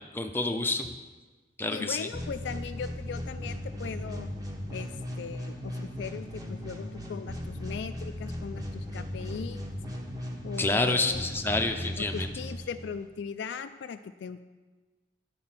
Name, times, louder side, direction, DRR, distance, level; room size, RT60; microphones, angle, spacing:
voice 1, 0.1-0.9 1.6-2.1 10.6-12.3, left 2 dB, 10° left, 4 dB, 0.6 m, -28 dB
voice 2, 1.7-4.3 4.7-9.6 10.4-11.2 12.0-14.4, left 6 dB, 70° left, 10 dB, 0.3 m, -39 dB
sound 1, 2.1-13.1, left 1 dB, 20° right, 1.1 m, -37 dB
10.5 x 4.3 x 5.8 m, 1.3 s
head